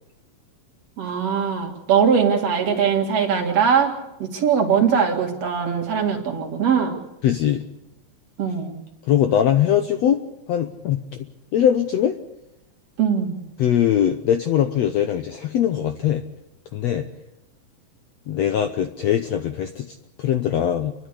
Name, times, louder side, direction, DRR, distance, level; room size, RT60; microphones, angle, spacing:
voice 1, 1.0-7.0 8.4-8.8 13.0-13.4, right 7 dB, 50° right, 2 dB, 3.1 m, -21 dB
voice 2, 7.2-7.6 9.1-10.2 10.5-11.0 11.5-12.2 13.6-16.2 16.7-17.1 18.3-20.9, left 10 dB, 70° left, 8 dB, 1.6 m, -21 dB
29.5 x 11.5 x 8.4 m, 0.89 s
omnidirectional pair, 3.9 m